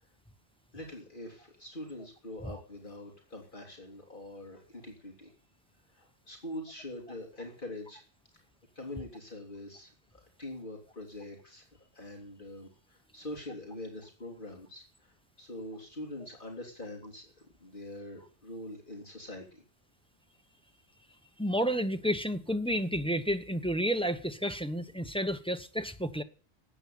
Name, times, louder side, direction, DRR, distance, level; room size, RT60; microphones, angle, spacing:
voice 1, 0.7-5.3 5.9-8.0 8.7-14.8 15.4-17.3 17.6-19.6, left 1 dB, 50° left, 3.3 m, -44 dB
voice 2, 21.4-26.2, equal, 5° left, 0.9 m, -31 dB
13.0 x 8.9 x 9.3 m
omnidirectional pair, 1.1 m